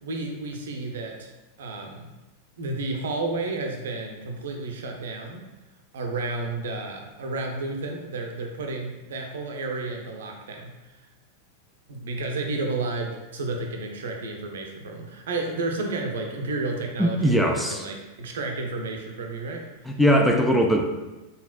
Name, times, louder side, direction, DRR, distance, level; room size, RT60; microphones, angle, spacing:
voice 1, 0.0-1.3 1.6-2.1 2.6-5.5 5.9-10.7 11.9-19.6, right 3 dB, 60° right, 2 dB, 0.6 m, -31 dB
voice 2, 17.0-17.9 19.9-20.9, equal, 5° left, 2 dB, 0.4 m, -20 dB
4.0 x 3.8 x 2.2 m, 1.1 s
figure-of-eight pair, 90°, 0 cm